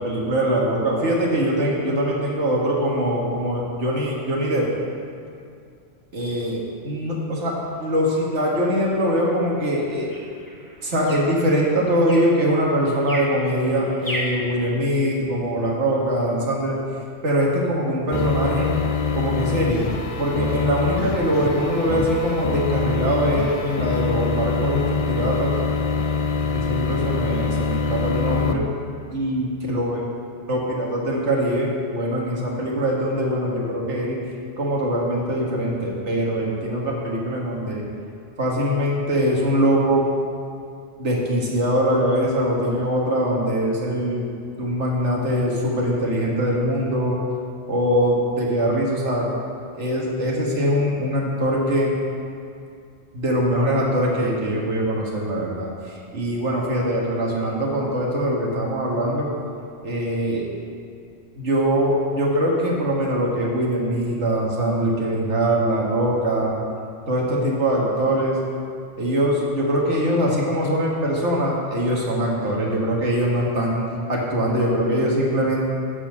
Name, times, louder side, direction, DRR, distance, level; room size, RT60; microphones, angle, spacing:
voice 1, 0.0-4.7 6.1-10.1 10.8-16.8 17.2-18.7 19.1-19.9 20.2-25.5 26.5-28.7 29.1-30.0 30.5-34.2 34.6-37.8 38.4-40.1 41.0-44.3 44.6-47.2 47.7-49.3 49.8-51.9 53.1-59.3 59.8-60.5 61.4-66.6 67.1-68.4 69.0-73.8 74.1-75.6, equal, 70° right, -3 dB, 1.9 m, -22 dB
sound 1, 7.4-14.5, equal, 15° left, 1.5 m, -37 dB
sound 2, 18.1-28.5, left 4 dB, 55° left, 0.4 m, -24 dB
11.5 x 4.3 x 7.2 m, 2.4 s
omnidirectional pair, 1.2 m